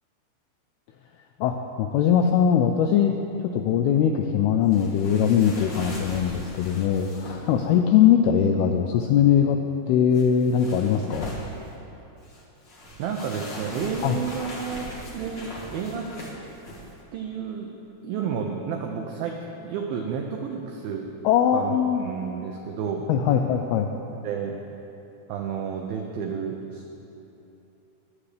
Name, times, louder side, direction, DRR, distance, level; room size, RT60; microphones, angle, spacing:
voice 1, 1.4-3.2 3.4-9.6 9.9-11.3 14.0-14.2 21.2-22.1 23.1-23.9, left 8 dB, 85° left, 4 dB, 2.2 m, -21 dB
sound 1, 4.7-7.6 10.1-11.7 12.2-16.9, equal, 60° left, 1.1 m, -39 dB
voice 2, 13.0-16.1 17.1-17.7 18.0-21.1 21.5-21.8 22.0-23.4 24.2-24.6 25.3-27.1, right 6 dB, 85° right, 2 dB, 2.1 m, -31 dB
20.5 x 8.5 x 3.4 m, 2.9 s
omnidirectional pair, 5.0 m